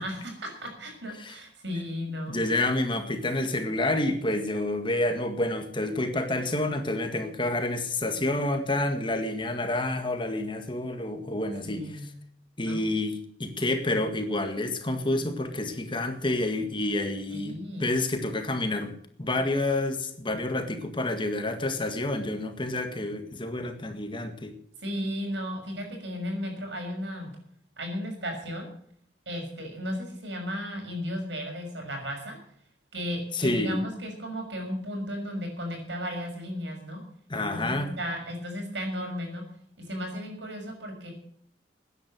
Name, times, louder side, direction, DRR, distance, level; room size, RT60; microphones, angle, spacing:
voice 1, 0.0-2.4 11.6-12.2 12.6-12.8 17.3-17.9 24.8-27.3 27.8-28.7 29.3-32.4 32.9-37.0 37.4-39.5 39.8-41.1, equal, 80° right, 2 dB, 6.3 m, -34 dB
voice 2, 2.3-11.9 12.6-24.6 33.3-33.8 37.3-37.9, left 2 dB, 30° left, 6 dB, 1.8 m, -29 dB
14.5 x 10.0 x 7.5 m, 0.63 s
head